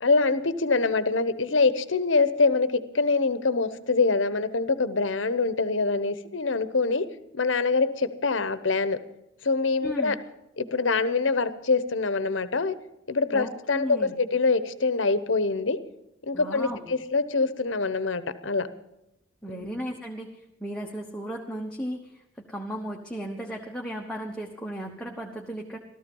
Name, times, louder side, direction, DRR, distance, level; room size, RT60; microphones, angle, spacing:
voice 1, 0.0-2.7 2.9-7.0 7.3-9.0 9.4-10.2 10.6-12.7 13.1-15.8 16.2-18.7 19.6-19.7, left 4 dB, 75° left, 14 dB, 1.0 m, -24 dB
voice 2, 9.8-10.2 13.3-14.1 16.3-16.9 19.4-22.2 22.5-25.8, equal, 5° left, -1 dB, 1.1 m, -35 dB
14.5 x 13.5 x 5.4 m, 0.86 s
head